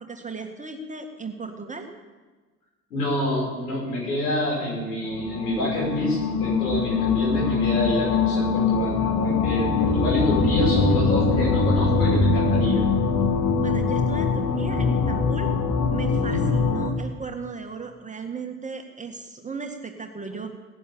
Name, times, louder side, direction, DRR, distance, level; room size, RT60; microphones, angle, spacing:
voice 1, 0.0-1.9 13.6-15.5 15.9-20.5, right 4 dB, 15° right, 5 dB, 1.9 m, -36 dB
voice 2, 2.9-12.8 16.1-16.5, left 1 dB, 75° left, -3 dB, 6.7 m, -27 dB
sound 1, 5.1-16.9, left 4 dB, 35° left, 1.9 m, -22 dB
18.0 x 10.5 x 7.1 m, 1.3 s
figure-of-eight pair, 60°, 47 cm